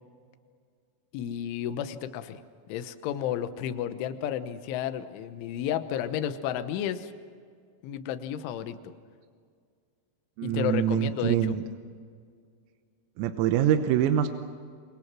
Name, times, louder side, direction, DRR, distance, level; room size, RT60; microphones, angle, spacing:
voice 1, 1.1-2.4 2.7-7.1 7.8-8.9 10.4-11.5, left 10 dB, 75° left, 10 dB, 3.3 m, -32 dB
voice 2, 10.4-11.6 13.2-14.3, right 10 dB, 85° right, 7 dB, 3.7 m, -24 dB
28.0 x 24.5 x 6.1 m, 2.1 s
omnidirectional pair, 6.0 m